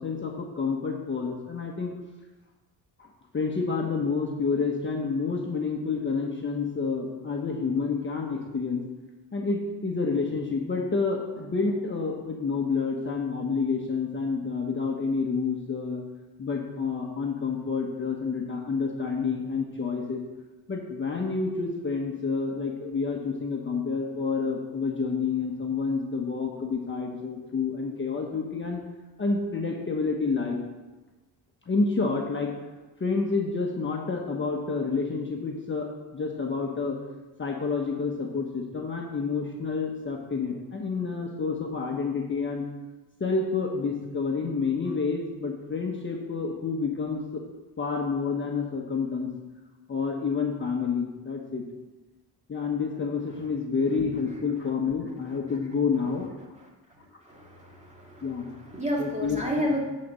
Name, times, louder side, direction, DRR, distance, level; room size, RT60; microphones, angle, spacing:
voice 1, 0.0-1.9 3.0-8.8 9.3-16.0 16.4-20.2 20.7-28.8 29.2-30.6 31.7-32.5 33.0-35.9 36.1-37.0 37.4-42.6 43.2-47.4 47.8-49.3 49.9-51.6 52.5-56.3 58.2-58.5 59.0-59.7, left 4 dB, 30° left, 0 dB, 1.1 m, -29 dB
voice 2, 57.3-59.8, equal, 15° right, -2 dB, 2.2 m, -31 dB
8.3 x 4.2 x 6.6 m, 1.1 s
cardioid pair, 90°, 42 cm